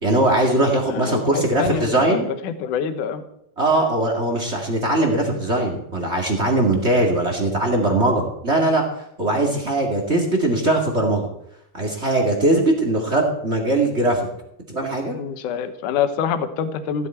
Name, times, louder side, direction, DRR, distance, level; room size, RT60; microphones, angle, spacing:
voice 1, 0.0-2.3 3.6-8.9 9.2-11.3 11.7-14.3 14.7-15.2, right 2 dB, 30° right, 2 dB, 1.3 m, -20 dB
voice 2, 0.9-2.2 2.4-3.2 15.1-17.1, left 7 dB, 65° left, 9 dB, 2.3 m, -26 dB
15.5 x 12.5 x 4.5 m, 0.77 s
omnidirectional pair, 4.5 m